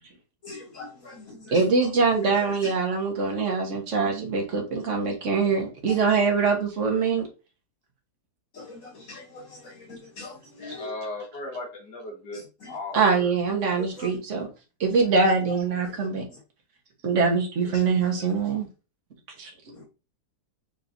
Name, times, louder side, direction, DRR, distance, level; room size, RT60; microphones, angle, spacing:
voice 1, 0.4-1.6 2.3-2.4 8.5-10.9 12.6-12.7 13.8-14.1 19.7-19.8, left 3 dB, 55° left, 2.5 m, -42 dB
voice 2, 1.5-7.3 12.9-14.5 14.8-16.2 17.0-18.7 19.4-19.5, right 4 dB, 50° right, 1.5 m, -23 dB
voice 3, 10.7-12.4 12.7-13.3, left 2 dB, 85° left, 2.3 m, -36 dB
5.1 x 3.7 x 2.6 m
omnidirectional pair, 1.8 m